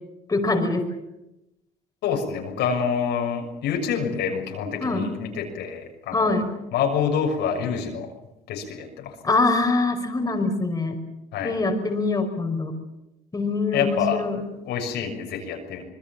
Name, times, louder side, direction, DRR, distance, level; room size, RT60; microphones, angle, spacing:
voice 1, 0.3-0.9 4.8-5.1 6.1-6.5 9.2-11.0 11.4-12.7 13.3-14.4, left 3 dB, 20° left, 3 dB, 5.3 m, -23 dB
voice 2, 2.0-6.4 6.7-8.1 8.5-9.2 11.3-11.5 13.7-14.2 14.6-15.8, left 7 dB, 80° left, 2 dB, 6.6 m, -27 dB
26.5 x 21.0 x 7.5 m, 0.92 s
cardioid pair, 110°, 17 cm